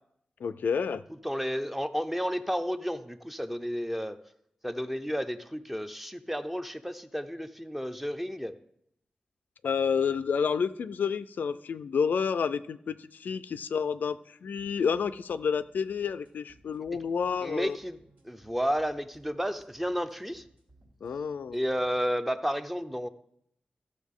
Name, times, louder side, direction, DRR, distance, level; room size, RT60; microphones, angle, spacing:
voice 1, 0.4-1.0 9.6-17.8 21.0-21.6, left 6 dB, 90° left, 14 dB, 0.3 m, -29 dB
voice 2, 1.2-4.2 4.6-8.5 17.4-18.0 18.2-20.4 21.5-23.1, equal, 5° right, 9 dB, 0.5 m, -32 dB
sound 1, 14.6-22.1, right 2 dB, 85° right, 2.7 m, -61 dB
14.0 x 6.5 x 3.6 m, 0.74 s
wide cardioid pair, 115°, 3 cm